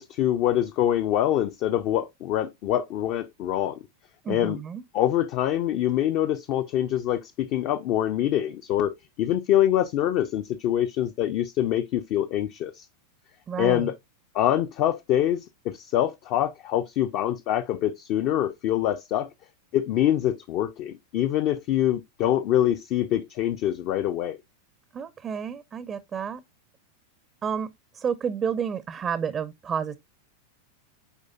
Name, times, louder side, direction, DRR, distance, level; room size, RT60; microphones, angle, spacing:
voice 1, 0.0-3.8 4.3-4.6 4.9-12.9 13.6-13.9 14.3-19.3 19.7-24.4, left 12 dB, 40° left, 0.4 m, -25 dB
voice 2, 4.2-4.8 13.5-13.9 24.9-26.4 27.4-30.0, right 7 dB, 25° right, 0.4 m, -30 dB
8.1 x 4.8 x 2.4 m
figure-of-eight pair, 90°, 0 cm